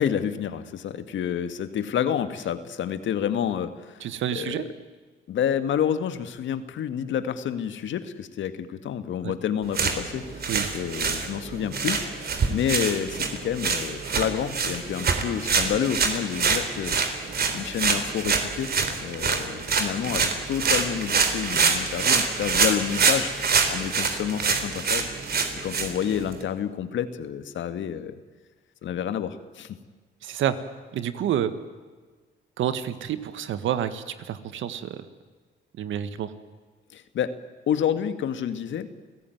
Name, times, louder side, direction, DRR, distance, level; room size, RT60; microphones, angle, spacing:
voice 1, 0.0-4.1 4.4-4.6 5.3-10.5 10.7-17.0 17.5-18.7 19.0-25.1 25.6-28.2 28.8-29.8 36.9-37.4 37.7-38.9, left 9 dB, 70° left, 11 dB, 1.8 m, -29 dB
voice 2, 4.0-4.7 9.2-9.3 10.5-10.7 30.2-30.6 30.9-31.5 32.6-35.1 35.8-36.3, right 10 dB, 80° right, 12 dB, 1.7 m, -28 dB
sound 1, 9.6-26.4, right 5 dB, 50° right, 3.6 m, -26 dB
29.5 x 17.0 x 9.4 m, 1.4 s
cardioid pair, 90°, 20 cm